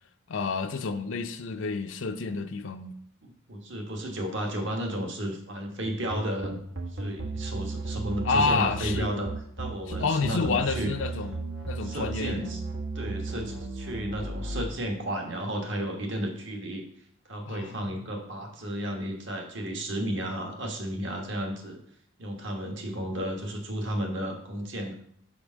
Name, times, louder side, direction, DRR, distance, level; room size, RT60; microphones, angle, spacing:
voice 1, 0.3-3.0 8.2-9.3 9.9-11.4 11.7-12.6 17.5-17.8, left 4 dB, 65° left, 0.5 m, -29 dB
voice 2, 3.2-6.6 6.9-9.3 9.6-10.9 11.8-12.6 12.9-16.8 17.2-21.8 22.2-24.9, right 1 dB, 60° right, 1.4 m, -33 dB
sound 1, 5.8-14.7, right 3 dB, 85° right, 1.3 m, -34 dB
5.1 x 5.0 x 6.2 m
head